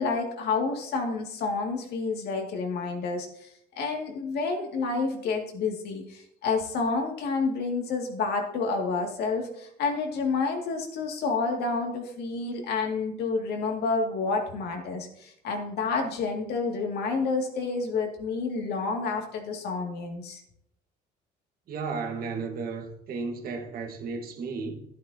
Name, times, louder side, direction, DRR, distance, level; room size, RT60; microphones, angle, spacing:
voice 1, 0.0-3.5 3.8-20.4, left 4 dB, 75° left, 2.2 m, -29 dB
voice 2, 21.7-24.8, right 4 dB, 60° right, 1.6 m, -34 dB
11.5 x 11.0 x 2.8 m
cardioid pair, 110°, 17 cm